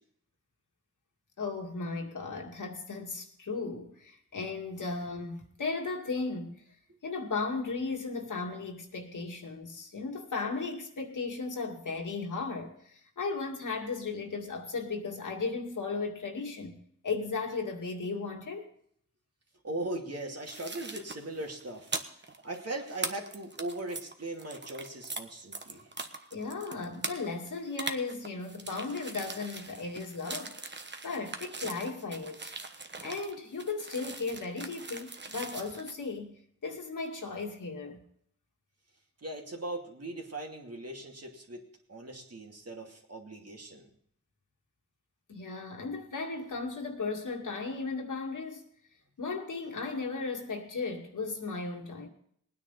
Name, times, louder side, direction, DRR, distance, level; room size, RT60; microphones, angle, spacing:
voice 1, 1.4-6.6 7.0-16.8 17.0-18.7 26.3-30.6 31.0-32.5 33.0-38.0 45.3-48.6 49.2-52.1, left 4 dB, 75° left, 2.2 m, -36 dB
voice 2, 19.6-25.9 39.2-41.6 41.9-43.9, right 2 dB, 50° right, 2.5 m, -39 dB
sound 1, 20.4-25.2 25.5-35.9, right 3 dB, 35° right, 1.2 m, -41 dB
19.5 x 9.6 x 4.1 m
wide cardioid pair, 85°, 31 cm